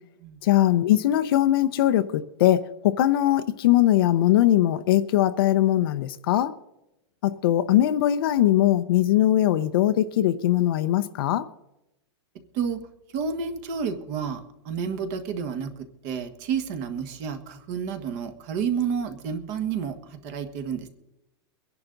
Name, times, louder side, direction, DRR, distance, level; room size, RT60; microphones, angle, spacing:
voice 1, 0.4-6.5 7.2-11.4, left 13 dB, 55° left, 0.7 m, -21 dB
voice 2, 13.1-14.4 14.6-15.7 16.0-19.9 20.2-20.9, right 6 dB, 35° right, 1.4 m, -30 dB
24.0 x 10.5 x 3.9 m
supercardioid pair, 170°, 14 cm